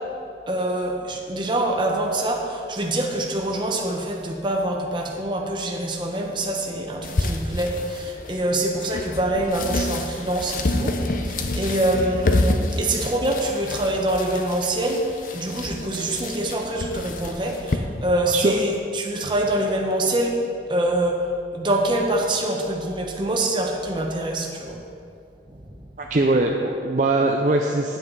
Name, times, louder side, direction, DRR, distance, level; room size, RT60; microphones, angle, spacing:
voice 1, 0.5-20.4 20.7-21.2 21.5-24.8, right 1 dB, 25° right, 0 dB, 1.0 m, -25 dB
sound 1, 7.0-17.8, left 2 dB, 50° left, 0.6 m, -28 dB
voice 2, 26.0-28.0, right 2 dB, 45° right, 1 dB, 0.5 m, -21 dB
9.5 x 8.5 x 4.0 m, 2.4 s
head